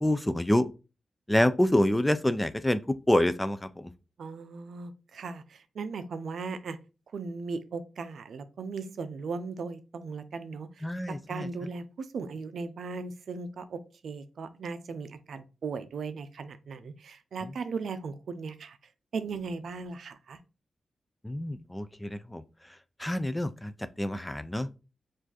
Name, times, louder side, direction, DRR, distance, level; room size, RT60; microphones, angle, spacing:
voice 1, 0.0-0.7 1.3-3.9 10.8-11.5 21.2-22.4 23.0-24.7, left 1 dB, 10° left, 0.3 m, -27 dB
voice 2, 4.2-6.8 7.1-18.8 19.1-20.4, right 4 dB, 75° right, 0.5 m, -37 dB
4.8 x 2.5 x 3.9 m
wide cardioid pair, 110°, 0 cm